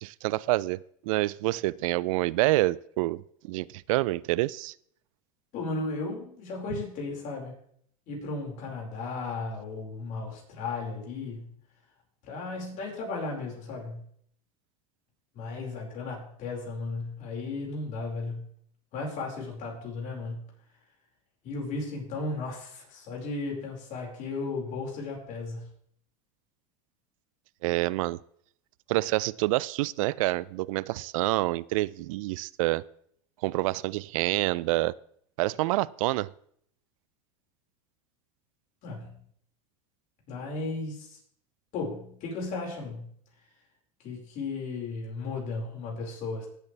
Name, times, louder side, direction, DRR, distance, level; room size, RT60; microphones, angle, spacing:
voice 1, 0.0-4.7 27.6-28.2 28.9-32.8 33.4-34.9 35.4-36.3, right 19 dB, 75° right, 22 dB, 0.4 m, -27 dB
voice 2, 5.5-7.5 8.1-11.5 12.2-14.0 15.3-18.5 18.9-20.4 21.4-25.7 38.8-39.2 40.3-41.2 41.7-43.1 44.0-46.5, left 3 dB, 50° left, -1 dB, 5.0 m, -35 dB
17.0 x 8.3 x 3.3 m, 0.65 s
supercardioid pair, 120°, 17 cm